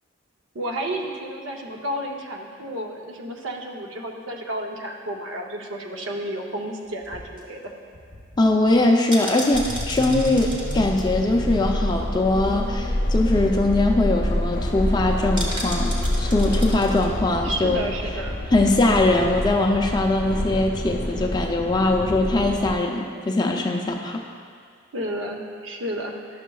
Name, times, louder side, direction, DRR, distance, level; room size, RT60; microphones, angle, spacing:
voice 1, 0.5-7.7 17.4-18.4 24.9-26.4, right 1 dB, 75° right, 1 dB, 0.7 m, -31 dB
sound 1, 6.9-12.3 12.6-12.7 12.9-13.2 13.6-13.7 13.9-14.3 15.4-17.1 17.4-17.5, equal, 25° right, 0.9 m, -36 dB
voice 2, 8.4-15.9 16.2-17.8 18.5-24.2, left 2 dB, 20° left, 1 dB, 0.4 m, -21 dB
sound 2, 9.5-22.7, left 1 dB, 50° left, 0.8 m, -27 dB
11.0 x 6.4 x 2.3 m, 2.1 s
head